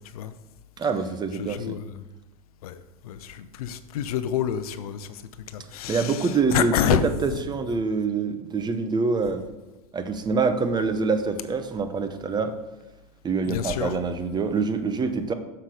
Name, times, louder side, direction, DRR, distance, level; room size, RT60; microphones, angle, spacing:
voice 1, 0.8-1.8 5.9-9.5 9.9-12.5 13.2-15.3, right 4 dB, 20° right, 9 dB, 0.7 m, -25 dB
voice 2, 1.4-1.9 2.6-5.1 5.5-6.2 6.5-7.0 13.5-13.9, left 10 dB, 75° left, 12 dB, 0.6 m, -27 dB
6.8 x 5.6 x 4.8 m, 1.0 s
hypercardioid pair, 100°, 19 cm